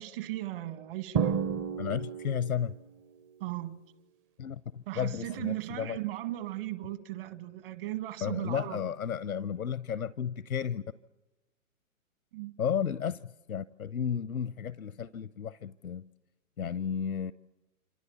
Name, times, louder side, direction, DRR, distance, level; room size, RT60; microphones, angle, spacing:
voice 1, 0.0-1.4 3.4-3.7 4.9-8.8 12.3-12.5, right 16 dB, 40° right, 1.9 m, -37 dB
Drum, 1.1-2.9, right 7 dB, 20° right, 0.8 m, -31 dB
voice 2, 1.8-2.7 4.4-6.0 8.2-10.8 12.6-16.1 16.6-17.3, left 8 dB, 85° left, 0.8 m, -33 dB
27.0 x 27.0 x 7.3 m
figure-of-eight pair, 125°, 42 cm